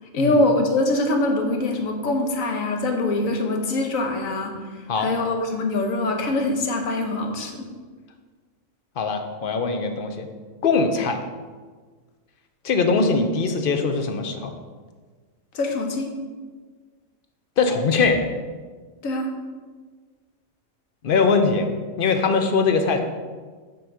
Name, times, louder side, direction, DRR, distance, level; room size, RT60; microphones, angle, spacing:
voice 1, 0.1-7.7 15.5-16.1 19.0-19.3, left 2 dB, 75° left, 3 dB, 1.4 m, -23 dB
voice 2, 9.0-10.3 10.6-11.2 12.6-14.5 17.6-18.2 21.0-21.7 22.0-23.0, left 4 dB, 50° left, 6 dB, 0.8 m, -21 dB
6.9 x 4.0 x 6.3 m, 1.5 s
omnidirectional pair, 1.4 m